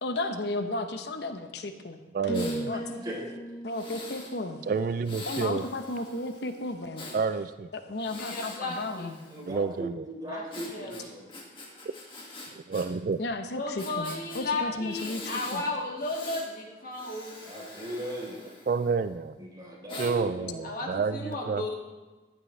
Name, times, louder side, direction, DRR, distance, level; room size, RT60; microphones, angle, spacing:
voice 1, 0.0-2.3 2.7-2.8 3.6-4.7 5.3-7.1 7.7-9.2 13.2-15.6, left 2 dB, 70° left, 7 dB, 0.8 m, -34 dB
voice 2, 2.1-2.7 4.7-5.6 7.1-7.7 9.5-10.1 12.7-13.2 18.7-19.4 20.0-21.6, right 5 dB, 50° right, 12 dB, 0.3 m, -29 dB
Breathing, 2.3-2.6 3.7-4.3 5.0-7.2 7.9-9.6 10.5-12.9 13.1-13.2 13.8-14.4 14.9-15.6 16.0-16.5 16.9-19.1 19.9-20.1, left 2 dB, 30° left, 2.0 m, -44 dB
sound 1, 2.3-6.3 6.6-7.0, right 1 dB, 15° left, 0.5 m, -39 dB
voice 3, 2.7-3.2 9.3-11.2 17.4-18.4 19.4-20.5, equal, 25° right, -4 dB, 3.7 m, -38 dB
voice 4, 8.1-9.1 10.3-11.1 13.5-17.4 20.6-21.7, left 2 dB, 50° left, -1 dB, 2.0 m, -34 dB
15.0 x 11.5 x 3.3 m, 1.2 s
head